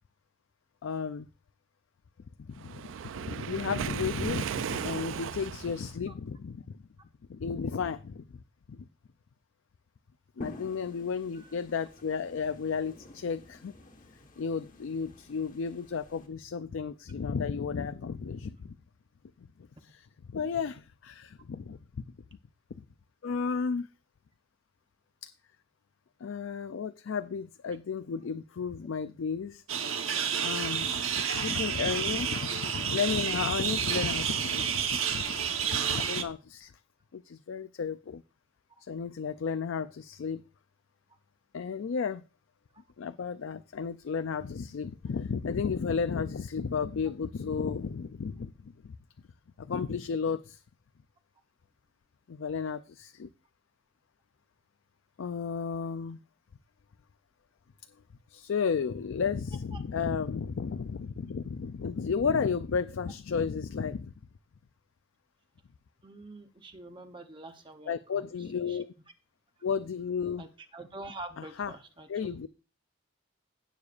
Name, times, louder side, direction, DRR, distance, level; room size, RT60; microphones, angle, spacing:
voice 1, 0.8-1.3 2.4-2.8 3.2-6.7 7.3-8.2 8.7-8.9 10.4-13.7 14.4-18.7 19.8-21.8 23.2-23.9 25.2-25.3 26.2-29.6 30.4-36.7 37.1-38.2 38.8-40.4 41.5-42.2 43.0-48.9 49.6-50.6 52.3-53.3 55.2-56.2 58.3-64.1 67.9-68.9 69.6-70.5 71.6-71.7 72.1-72.5, left 6 dB, 70° left, 0.4 m, -33 dB
Waves surf, 2.6-5.9, right 7 dB, 70° right, 0.4 m, -36 dB
sound 1, 10.4-16.3, left 2 dB, 40° left, 1.4 m, -50 dB
sound 2, 29.7-36.2, right 8 dB, 90° right, 1.1 m, -30 dB
voice 2, 66.0-68.8 70.4-70.5 70.7-72.5, right 2 dB, 25° right, 0.7 m, -46 dB
16.5 x 6.6 x 2.5 m
head